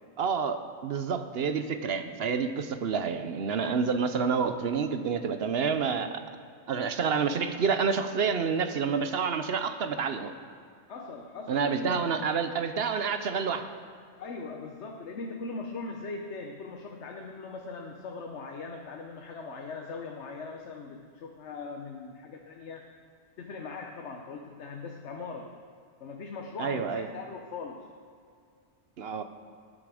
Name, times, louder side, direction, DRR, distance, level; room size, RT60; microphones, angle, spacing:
voice 1, 0.2-6.2 6.7-10.3 11.5-13.7 26.6-27.1 29.0-29.2, right 6 dB, 65° right, 9 dB, 0.9 m, -28 dB
voice 2, 10.9-12.1 14.2-22.8 23.4-25.5 26.0-27.8, left 4 dB, 90° left, 2 dB, 1.2 m, -40 dB
18.5 x 7.6 x 4.9 m, 2.2 s
omnidirectional pair, 1.1 m